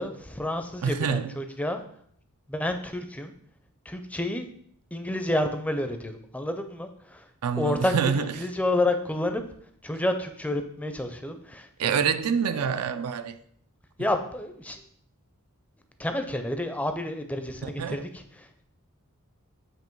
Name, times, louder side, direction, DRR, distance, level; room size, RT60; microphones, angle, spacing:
voice 1, 0.0-1.8 2.5-3.3 3.8-4.5 4.9-7.3 7.6-9.4 9.8-12.2 14.0-14.8 16.0-18.6, left 1 dB, 5° left, 0.5 m, -30 dB
voice 2, 0.8-1.3 7.4-8.3 11.8-13.4 17.8-18.0, right 7 dB, 85° right, 0.4 m, -26 dB
7.5 x 3.0 x 4.5 m
head